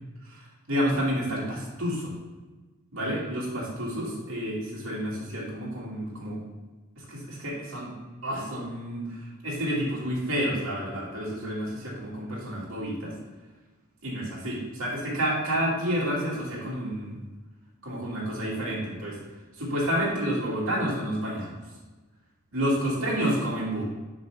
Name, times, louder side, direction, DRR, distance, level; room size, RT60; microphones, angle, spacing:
voice 1, 0.2-2.1 2.9-6.4 7.0-7.9 8.2-13.1 14.0-17.2 17.8-19.2 19.6-21.6 22.5-23.8, equal, 75° right, -5 dB, 2.3 m, -29 dB
7.6 x 3.4 x 6.1 m, 1.2 s
head